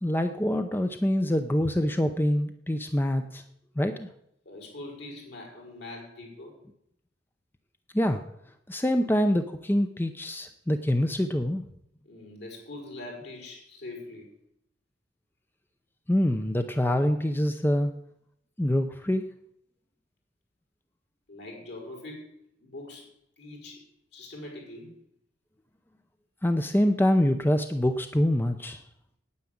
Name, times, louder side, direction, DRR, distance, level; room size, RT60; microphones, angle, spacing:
voice 1, 0.0-3.4 3.8-4.1 7.9-8.2 8.7-11.6 16.1-17.9 18.6-19.2 26.4-28.8, left 1 dB, 10° left, 8 dB, 0.6 m, -25 dB
voice 2, 4.4-6.6 12.0-14.3 17.0-17.2 21.3-23.1 23.4-23.8 24.1-25.0, left 2 dB, 65° left, 0 dB, 5.1 m, -43 dB
9.6 x 9.1 x 8.6 m, 0.75 s
head